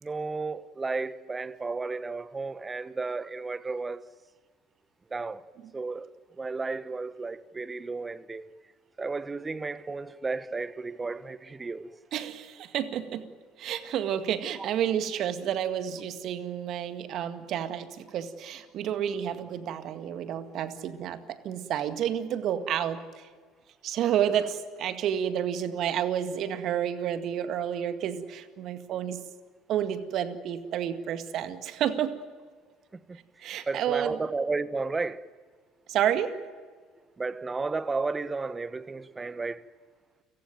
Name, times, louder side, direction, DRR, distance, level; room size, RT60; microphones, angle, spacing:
voice 1, 0.0-4.0 5.1-5.4 5.7-6.1 6.4-8.5 9.0-11.9 32.9-33.2 33.7-35.2 37.2-39.7, right 3 dB, 20° right, 1.2 m, -33 dB
voice 2, 12.1-13.3 13.6-23.3 23.8-29.2 29.7-32.2 33.4-34.2 35.9-36.4, right 10 dB, 55° right, 1.9 m, -30 dB
30.0 x 17.5 x 9.3 m
hypercardioid pair, 60°, 0 cm